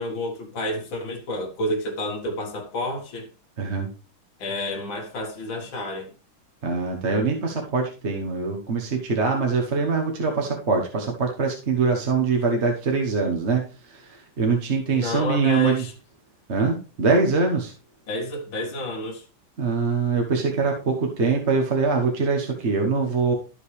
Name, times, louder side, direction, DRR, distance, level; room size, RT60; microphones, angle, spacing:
voice 1, 0.0-3.3 4.4-6.1 14.9-15.9 18.1-19.2, left 1 dB, 75° left, 2.3 m, -30 dB
voice 2, 3.6-3.9 6.6-15.8 16.5-17.7 19.6-23.3, right 4 dB, 40° right, 1.3 m, -23 dB
12.5 x 5.2 x 3.2 m
omnidirectional pair, 2.2 m